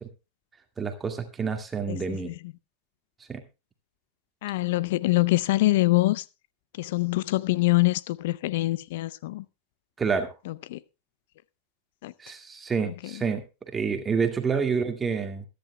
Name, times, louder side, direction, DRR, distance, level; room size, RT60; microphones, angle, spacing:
voice 1, 0.8-2.3 3.3-3.4 10.0-10.3 12.2-15.5, right 5 dB, 20° right, 1.9 m, -28 dB
voice 2, 1.9-2.3 4.4-6.2 6.8-9.4 10.5-10.8 12.0-12.1 12.8-12.9, left 19 dB, 60° left, 0.6 m, -25 dB
22.0 x 10.5 x 2.3 m
figure-of-eight pair, 95°, 0 cm